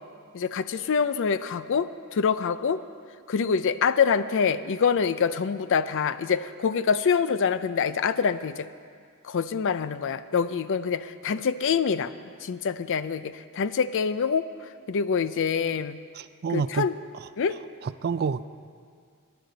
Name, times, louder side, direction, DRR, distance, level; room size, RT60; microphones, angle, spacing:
voice 1, 0.3-2.8 3.3-8.7 9.2-12.1 12.4-14.5 14.9-16.0 16.5-17.0 17.4-17.6, left 6 dB, 60° left, 13 dB, 0.4 m, -25 dB
voice 2, 16.1-16.9 17.8-18.5, right 6 dB, 45° right, 14 dB, 0.4 m, -28 dB
20.0 x 11.0 x 4.0 m, 2.1 s
head